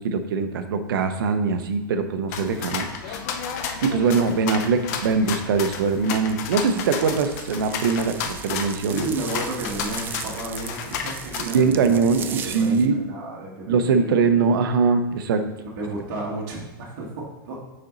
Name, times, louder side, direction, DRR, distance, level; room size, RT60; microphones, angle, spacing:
voice 1, 0.0-3.2 3.8-9.1 11.4-13.0 13.7-15.4, right 5 dB, 70° right, 8 dB, 0.8 m, -22 dB
sound 1, 2.3-11.4, left 6 dB, 45° left, 0.7 m, -32 dB
sound 2, 6.1-12.9, right 7 dB, 15° right, 0.3 m, -38 dB
voice 2, 8.9-14.1 15.6-17.6, right 2 dB, 50° right, -4 dB, 1.8 m, -32 dB
6.6 x 4.3 x 3.9 m, 1.2 s
supercardioid pair, 150°, 12 cm